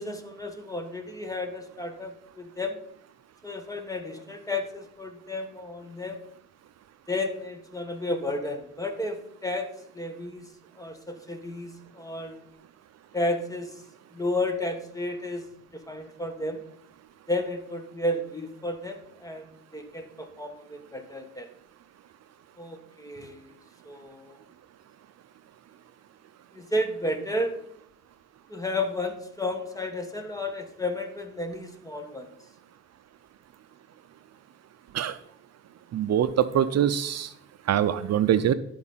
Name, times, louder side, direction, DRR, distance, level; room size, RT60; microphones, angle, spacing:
voice 1, 0.0-2.8 3.4-6.2 7.1-10.5 10.8-12.5 13.1-13.8 14.1-15.5 15.7-16.6 17.3-21.5 22.6-23.6 23.8-24.4 26.5-27.6 28.5-32.3, left 1 dB, 10° left, 5 dB, 1.6 m, -32 dB
voice 2, 35.9-37.3 37.7-38.5, right 10 dB, 60° right, 12 dB, 0.6 m, -23 dB
12.0 x 5.2 x 5.6 m, 0.73 s
cardioid pair, 90°, 30 cm